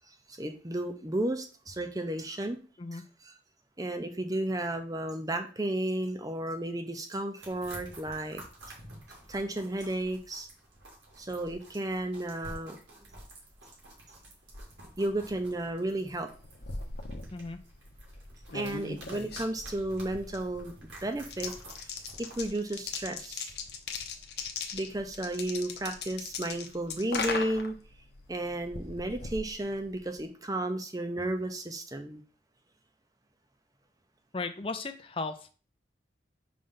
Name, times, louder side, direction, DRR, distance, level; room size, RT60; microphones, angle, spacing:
voice 1, 0.3-2.6 2.9-3.0 3.8-8.4 9.3-10.5 11.2-12.8 15.0-16.3 18.5-20.7 21.0-21.5 22.2-23.5 24.7-27.7 28.3-32.2, right 1 dB, 20° right, 6 dB, 0.7 m, -33 dB
sound 1, 7.4-22.5, right 1 dB, 85° right, 2.3 m, -50 dB
sound 2, 16.2-30.3, left 4 dB, 60° left, 0.9 m, -40 dB
voice 2, 34.3-35.5, left 3 dB, 30° left, 8 dB, 0.6 m, -36 dB
5.1 x 3.3 x 5.6 m, 0.37 s
head